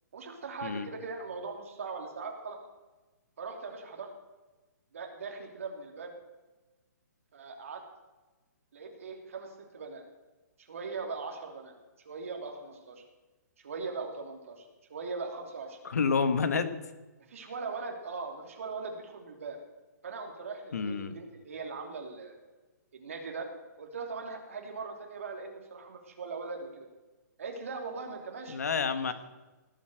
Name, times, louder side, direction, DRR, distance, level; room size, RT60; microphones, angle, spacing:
voice 1, 0.1-2.6 3.4-4.1 4.9-6.1 7.3-7.8 8.7-10.0 10.6-11.7 12.0-13.0 13.6-15.9 17.3-19.6 20.0-22.4 22.9-23.5 23.8-26.9 27.4-28.6 28.9-29.1, right 4 dB, 50° right, 3 dB, 3.0 m, -40 dB
voice 2, 15.8-16.7 20.7-21.1 28.5-29.1, left 5 dB, 60° left, 10 dB, 1.5 m, -28 dB
18.0 x 8.4 x 7.8 m, 1.2 s
hypercardioid pair, 180°, 10 cm